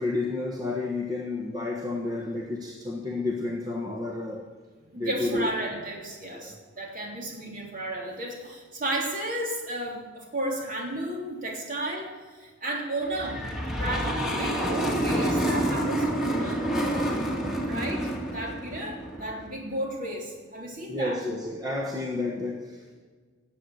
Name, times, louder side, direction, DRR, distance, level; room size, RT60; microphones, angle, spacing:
voice 1, 0.0-4.5 4.9-5.5 6.3-6.6 20.9-22.9, left 2 dB, 20° right, 0 dB, 1.2 m, -31 dB
voice 2, 4.9-16.7 17.6-21.2, right 1 dB, 45° right, 0 dB, 3.2 m, -33 dB
sound 1, 13.1-19.5, right 1 dB, ahead, 2.3 m, -28 dB
18.0 x 8.1 x 8.4 m, 1.5 s
head